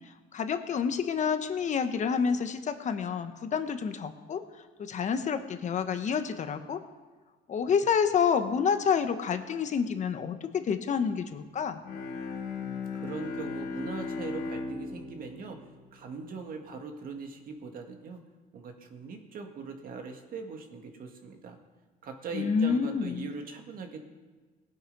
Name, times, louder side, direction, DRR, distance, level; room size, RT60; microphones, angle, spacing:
voice 1, 0.3-4.4 4.8-6.8 7.5-11.8 22.3-23.3, left 6 dB, 45° left, 8 dB, 1.1 m, -28 dB
Bowed string instrument, 11.8-16.7, left 4 dB, 80° left, 2.5 m, -37 dB
voice 2, 12.5-15.6 15.9-18.2 18.5-21.6 22.0-24.0, right 4 dB, 55° right, 4 dB, 2.0 m, -41 dB
18.0 x 7.9 x 5.4 m, 1.4 s
cardioid pair, 110°, 17 cm